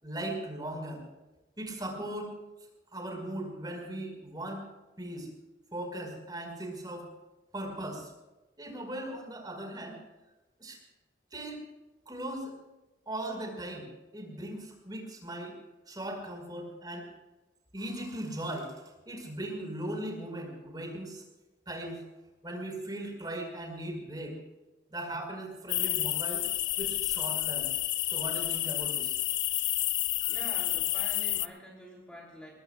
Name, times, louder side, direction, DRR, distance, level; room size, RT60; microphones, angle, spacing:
voice 1, 0.0-1.0 1.6-2.3 2.9-4.7 5.0-5.3 5.7-7.1 7.5-8.1 8.6-10.0 10.6-10.8 11.3-11.6 12.1-12.5 13.1-15.6 15.9-17.1 17.7-18.8 19.1-21.2 21.7-22.0 22.4-24.4 24.9-26.4 26.8-27.7 28.1-29.2, right 1 dB, 20° right, 1 dB, 5.3 m, -38 dB
sound 1, 25.7-31.5, left 15 dB, 90° left, 0.6 m, -30 dB
voice 2, 30.3-32.6, left 1 dB, 5° left, -3 dB, 3.3 m, -47 dB
24.0 x 21.0 x 2.5 m, 1.0 s
head